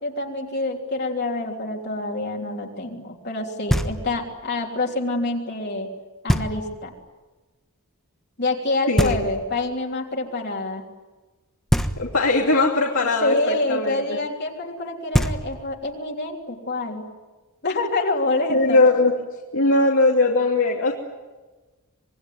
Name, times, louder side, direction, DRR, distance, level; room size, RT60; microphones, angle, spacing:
voice 1, 0.0-5.9 6.2-6.9 8.4-10.9 13.2-17.1 17.6-18.8, left 2 dB, 50° left, 1 dB, 3.4 m, -26 dB
Knock, 3.7-4.4 6.3-6.9 9.0-9.8 11.7-12.5 14.8-14.9 15.1-15.9, equal, ahead, 1.3 m, -24 dB
voice 2, 12.0-14.0 18.5-19.1 19.5-20.9, left 2 dB, 65° left, -1 dB, 2.9 m, -19 dB
27.0 x 21.5 x 9.5 m, 1.2 s
head